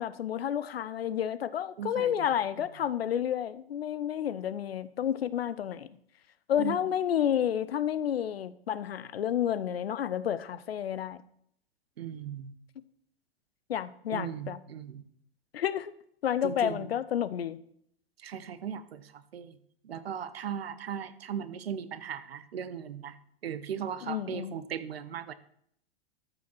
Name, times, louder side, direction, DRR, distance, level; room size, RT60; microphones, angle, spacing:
voice 1, 0.0-5.9 6.5-11.2 13.7-14.6 15.5-15.9 16.2-17.6 24.0-24.5, left 10 dB, 75° left, 16 dB, 0.8 m, -30 dB
voice 2, 1.8-2.3 6.6-6.8 12.0-12.5 14.1-15.0 16.4-16.9 18.2-19.5 19.8-23.1 23.4-25.3, right 8 dB, 75° right, 13 dB, 1.0 m, -38 dB
13.0 x 6.0 x 6.1 m, 0.68 s
figure-of-eight pair, 95°, 31 cm